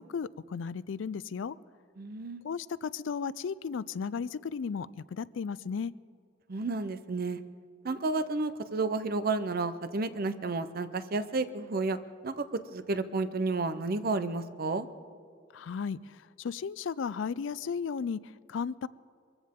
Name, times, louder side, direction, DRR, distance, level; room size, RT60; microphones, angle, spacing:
voice 1, 0.0-1.6 2.4-5.9 15.5-18.9, left 6 dB, 75° left, 19 dB, 0.4 m, -35 dB
voice 2, 2.0-2.4 6.5-7.4 7.8-12.0 12.2-12.5 12.7-14.9, right 3 dB, 50° right, 12 dB, 0.7 m, -31 dB
23.0 x 15.0 x 3.7 m, 2.3 s
head